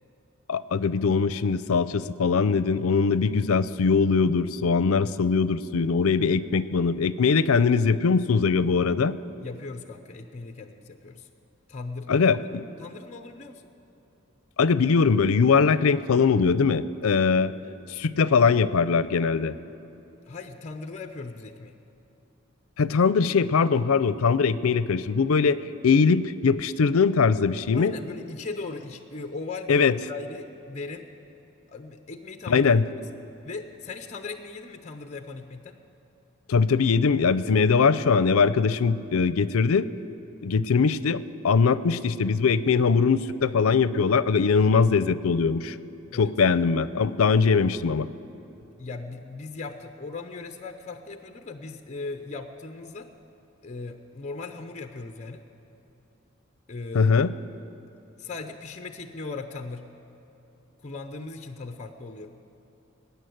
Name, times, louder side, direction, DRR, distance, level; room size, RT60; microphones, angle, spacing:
voice 1, 0.5-9.1 12.1-12.7 14.6-17.5 17.9-19.5 22.8-27.9 29.7-29.9 32.5-32.8 36.5-39.9 40.4-45.8 46.1-48.1 56.9-57.3, left 5 dB, 80° left, 16 dB, 0.5 m, -21 dB
voice 2, 9.4-11.3 11.7-12.1 12.4-13.7 20.2-21.8 27.7-31.0 31.7-32.7 33.4-35.8 46.1-46.3 48.8-53.1 53.6-55.4 56.7-57.1 58.2-59.9 60.8-62.3, left 3 dB, 35° left, 6 dB, 0.6 m, -38 dB
20.0 x 9.1 x 7.8 m, 3.0 s
head